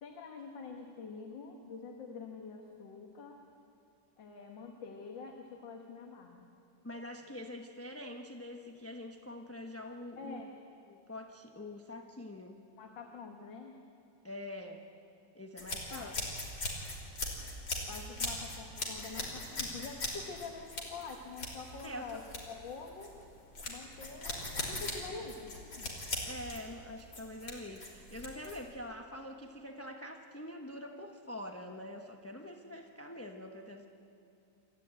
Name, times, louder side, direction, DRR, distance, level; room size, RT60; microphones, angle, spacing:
voice 1, 0.0-3.4 4.2-6.5 10.2-10.5 12.8-13.8 15.9-16.2 17.9-23.2 23.7-25.9, left 4 dB, 85° left, 2 dB, 2.1 m, -46 dB
voice 2, 6.8-10.4 10.9-12.6 14.2-14.8 15.3-16.2 21.8-22.2 26.2-33.9, left 1 dB, 10° left, 3 dB, 0.7 m, -45 dB
sound 1, 15.6-28.7, left 2 dB, 65° left, 4.0 m, -40 dB
28.0 x 14.5 x 9.0 m, 2.6 s
omnidirectional pair, 2.0 m